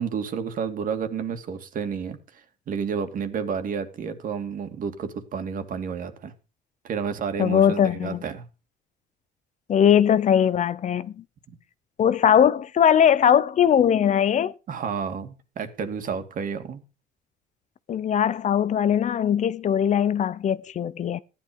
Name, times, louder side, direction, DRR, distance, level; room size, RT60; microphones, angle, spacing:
voice 1, 0.0-6.3 6.8-8.4 11.5-11.6 14.7-16.8, right 6 dB, 55° right, 2.6 m, -31 dB
voice 2, 7.4-8.2 9.7-11.2 12.0-14.5 17.9-21.2, left 9 dB, 45° left, 0.7 m, -20 dB
14.5 x 11.0 x 5.3 m
cardioid pair, 110°, 17 cm